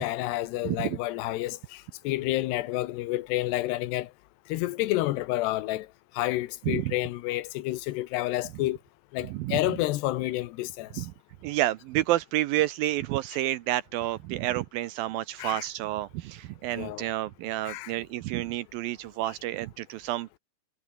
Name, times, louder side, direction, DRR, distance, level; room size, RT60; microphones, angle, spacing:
voice 1, 0.0-4.1 4.5-5.9 6.1-8.8 9.1-11.1 15.4-15.7 16.8-17.1 17.6-17.9, left 17 dB, 90° left, 3.1 m, -29 dB
voice 2, 0.6-1.0 6.7-6.9 9.3-9.6 11.0-11.1 11.4-20.4, right 15 dB, 80° right, 2.2 m, -29 dB
omnidirectional pair, 4.7 m